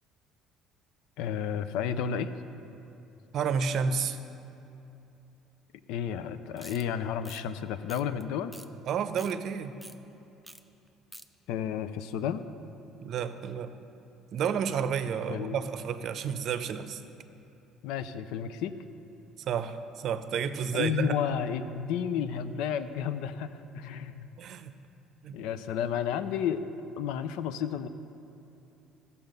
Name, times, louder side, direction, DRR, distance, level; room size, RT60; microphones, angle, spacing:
voice 1, 1.2-2.3 5.9-8.5 11.5-12.5 15.3-15.7 17.8-18.7 20.7-24.3 25.3-26.6 27.0-27.9, left 8 dB, 80° left, 12 dB, 0.5 m, -32 dB
voice 2, 3.3-4.2 8.9-9.8 13.0-13.8 14.3-17.0 19.5-21.1 24.4-24.7 25.2-25.4, right 7 dB, 55° right, 10 dB, 0.6 m, -31 dB
sound 1, 6.6-6.8 7.2-7.4 7.9-8.2 8.5-8.7 9.0-9.3 9.8-10.0 10.4-10.6 10.9-11.3, right 1 dB, ahead, 0.5 m, -47 dB
14.5 x 6.9 x 5.2 m, 2.9 s
cardioid pair, 105°, 0 cm